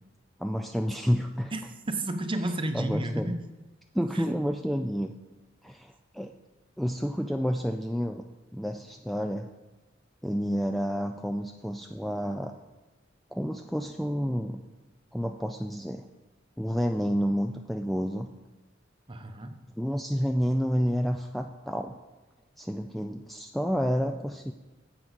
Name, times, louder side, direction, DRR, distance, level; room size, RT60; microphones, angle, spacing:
voice 1, 0.4-1.5 2.7-3.4 3.9-5.1 5.6-6.3 6.8-8.2 8.5-9.5 10.2-12.5 13.3-14.6 15.1-16.1 16.6-18.3 19.8-22.0 22.6-24.5, equal, ahead, 4 dB, 0.3 m, -29 dB
voice 2, 1.5-3.5 4.1-4.2 19.1-19.5, right 1 dB, 25° right, 7 dB, 0.8 m, -32 dB
10.5 x 7.8 x 4.1 m, 1.1 s
head